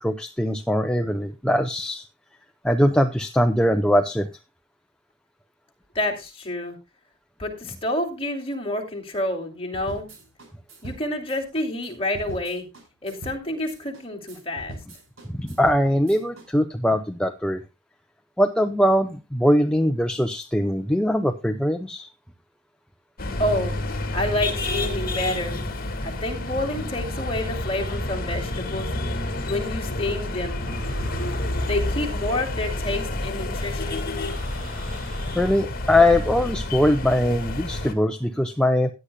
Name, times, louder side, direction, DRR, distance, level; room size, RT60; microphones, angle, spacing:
voice 1, 0.0-2.0 2.6-4.3 15.3-17.6 18.4-22.1 35.4-38.9, left 1 dB, 5° left, 5 dB, 0.7 m, -21 dB
voice 2, 5.9-6.8 7.4-10.1 10.8-12.6 13.0-14.8 23.4-23.7 24.1-25.6 26.0-28.9 29.4-30.7 31.7-34.0, left 1 dB, 25° left, 2 dB, 2.8 m, -28 dB
sound 1, 9.7-16.5, right 1 dB, 65° right, 4.6 m, -42 dB
sound 2, 23.2-37.9, left 2 dB, 45° left, 1.9 m, -29 dB
sound 3, 30.4-35.6, equal, 40° right, 7.3 m, -41 dB
16.5 x 10.0 x 2.2 m, 0.26 s
head